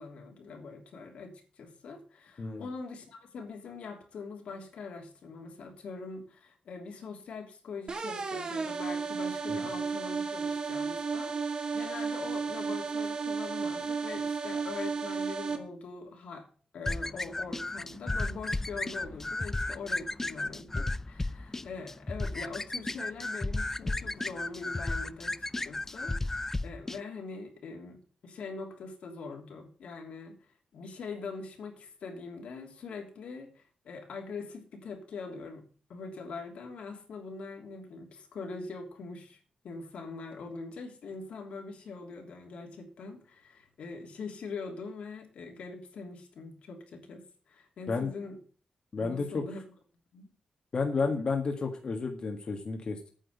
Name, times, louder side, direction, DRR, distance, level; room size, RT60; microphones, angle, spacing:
voice 1, 0.0-16.5 16.7-25.4 25.6-30.4 30.7-35.6 35.9-48.4 49.0-49.6 50.1-50.3 51.0-51.3, left 4 dB, 85° left, 2 dB, 3.1 m, -43 dB
voice 2, 2.4-2.7 9.5-9.6 47.9-48.1 48.9-49.4 50.7-53.1, left 4 dB, 45° left, 3 dB, 1.7 m, -31 dB
sound 1, 7.9-15.6, right 5 dB, 45° right, 1.6 m, -33 dB
sound 2, 16.9-27.0, left 2 dB, 20° left, 0.4 m, -34 dB
9.3 x 6.4 x 8.3 m, 0.40 s
wide cardioid pair, 110°, 2 cm